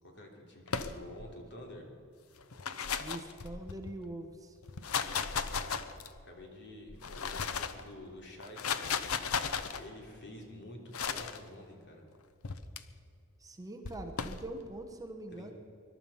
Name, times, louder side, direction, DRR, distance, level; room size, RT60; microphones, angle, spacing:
voice 1, 0.0-1.8 5.5-5.9 6.2-8.8 9.7-12.0 15.3-15.5, left 1 dB, 55° left, 1 dB, 3.2 m, -49 dB
sound 1, 0.7-1.3 2.4-3.9 4.6-6.3 6.9-7.8 8.4-9.8 10.9-11.4 12.4-12.8 13.8-14.4, left 6 dB, 85° left, 0.9 m, -35 dB
voice 2, 3.0-4.6 13.4-15.5, right 1 dB, 15° right, 4 dB, 1.1 m, -43 dB
21.5 x 12.0 x 5.6 m, 2.4 s
head